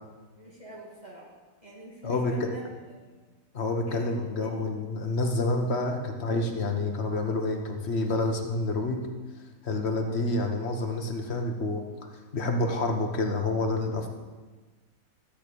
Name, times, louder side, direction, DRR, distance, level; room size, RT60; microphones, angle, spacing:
voice 1, 0.4-1.3 1.6-3.2 3.9-4.1 4.4-4.5 10.1-10.3, equal, 30° right, -5 dB, 2.3 m, -45 dB
voice 2, 2.0-2.5 3.5-9.1 9.6-11.8 12.3-14.1, left 2 dB, 45° left, 3 dB, 1.3 m, -28 dB
13.5 x 4.6 x 8.4 m, 1.3 s
omnidirectional pair, 1.6 m